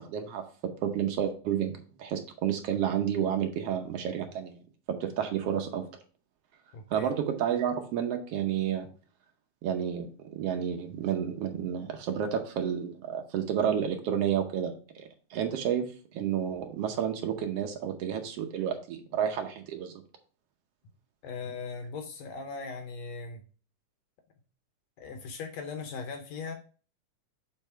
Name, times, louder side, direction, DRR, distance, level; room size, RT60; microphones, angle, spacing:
voice 1, 0.0-4.6 4.9-5.9 6.9-8.9 9.6-20.0, right 9 dB, 75° right, 5 dB, 1.4 m, -31 dB
voice 2, 6.7-7.1 21.2-23.4 25.0-26.5, left 4 dB, 70° left, 5 dB, 1.7 m, -39 dB
7.7 x 4.1 x 4.5 m, 0.39 s
omnidirectional pair, 3.8 m